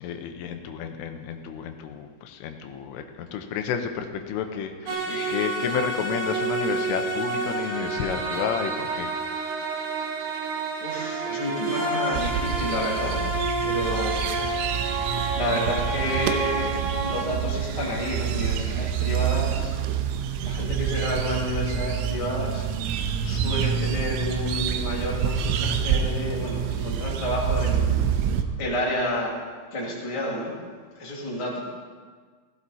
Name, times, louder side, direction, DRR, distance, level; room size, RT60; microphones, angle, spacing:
voice 1, 0.0-9.1, left 7 dB, 80° left, 6 dB, 3.4 m, -31 dB
voice 2, 4.9-5.3 10.8-13.2 13.6-14.3 15.0-16.7 17.0-19.8 20.4-22.7 23.2-27.9 28.6-29.3 29.7-30.5 30.9-31.6, left 1 dB, 10° left, -4 dB, 1.5 m, -30 dB
sound 1, 4.9-17.2, right 3 dB, 65° right, 3.3 m, -29 dB
sound 2, 12.1-28.4, right 8 dB, 90° right, 3.3 m, -27 dB
16.0 x 16.0 x 4.2 m, 1.5 s
omnidirectional pair, 5.7 m